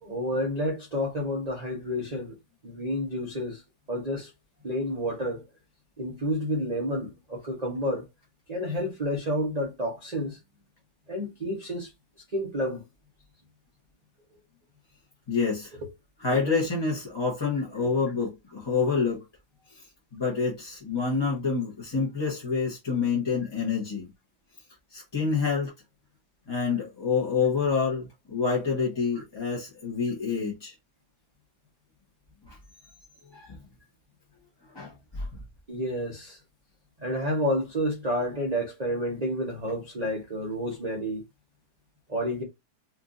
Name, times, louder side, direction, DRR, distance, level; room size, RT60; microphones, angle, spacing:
voice 1, 0.0-2.3 2.6-3.6 3.9-4.3 4.6-5.5 6.0-8.0 8.5-10.4 11.1-11.9 12.3-12.8 15.8-15.9 16.3-16.4 35.7-36.4 37.0-41.2 42.1-42.4, equal, 30° right, 0.8 m, -30 dB
voice 2, 15.3-15.8 16.2-19.2 20.1-24.1 24.9-25.7 26.5-30.7 32.5-32.6 33.3-33.6 34.7-35.3, left 5 dB, 20° left, 0.9 m, -27 dB
4.3 x 2.6 x 2.5 m
omnidirectional pair, 1.8 m